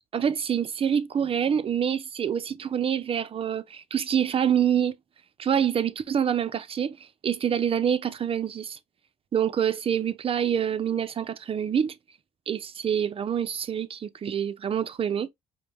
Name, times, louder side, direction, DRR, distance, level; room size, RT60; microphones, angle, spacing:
voice 1, 0.1-4.9 5.4-8.8 9.3-11.9 12.5-15.3, right 8 dB, 35° right, 0.6 m, -26 dB
5.0 x 2.2 x 3.5 m
cardioid pair, 110°, 17 cm